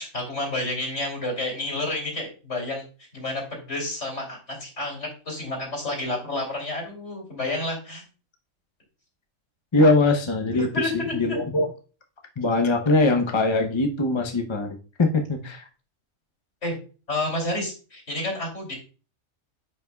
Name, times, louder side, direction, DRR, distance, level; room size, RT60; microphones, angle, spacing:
voice 1, 0.0-2.8 3.1-8.0 10.5-11.4 16.6-16.7 17.1-18.8, left 2 dB, 60° left, -1 dB, 3.2 m, -30 dB
voice 2, 9.7-10.7 10.9-11.7 12.4-15.6, left 2 dB, 25° left, 3 dB, 0.7 m, -22 dB
9.6 x 5.5 x 2.3 m, 0.36 s
omnidirectional pair, 1.4 m